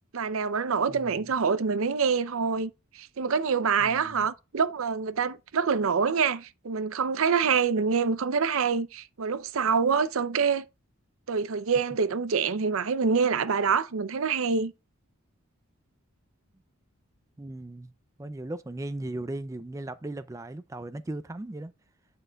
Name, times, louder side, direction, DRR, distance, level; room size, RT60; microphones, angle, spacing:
voice 1, 0.1-10.6 11.3-14.7, right 5 dB, 75° right, 0.6 m, -26 dB
voice 2, 0.9-1.2 3.8-4.3 17.4-17.9 18.2-21.7, right 2 dB, 15° right, 0.3 m, -37 dB
8.9 x 6.4 x 2.3 m
head